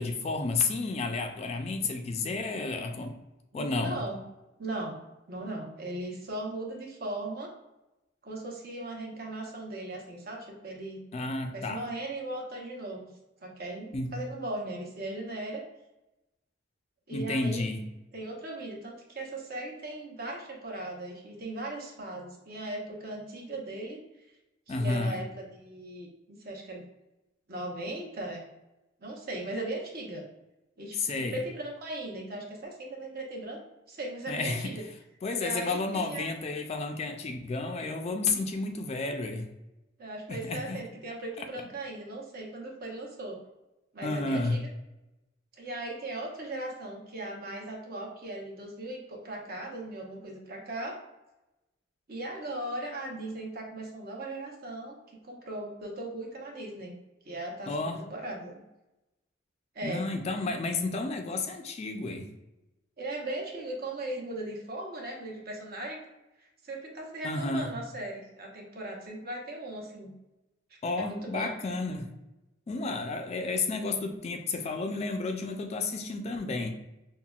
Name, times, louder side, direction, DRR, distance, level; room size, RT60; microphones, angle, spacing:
voice 1, 0.0-3.2 3.5-4.0 11.1-11.8 13.9-14.2 17.1-17.8 24.7-25.2 30.9-31.4 34.3-34.8 35.2-39.5 40.3-40.8 44.0-44.7 57.7-58.0 59.8-62.3 67.2-67.7 70.8-72.2 72.7-76.7, left 3 dB, 35° left, 5 dB, 0.3 m, -31 dB
voice 2, 3.5-4.2 4.6-5.0 5.3-7.5 8.2-11.0 11.5-13.1 13.4-15.6 17.1-17.6 18.1-24.0 24.7-26.8 27.5-28.4 29.0-30.2 30.8-33.6 33.9-34.8 35.3-36.3 40.0-43.4 43.9-44.6 45.6-51.0 52.1-55.0 55.2-56.9 57.2-58.6 59.7-60.0 63.0-66.0 66.6-70.1 71.0-71.5, right 1 dB, 50° right, 0 dB, 0.8 m, -38 dB
5.6 x 2.1 x 2.3 m, 0.97 s
head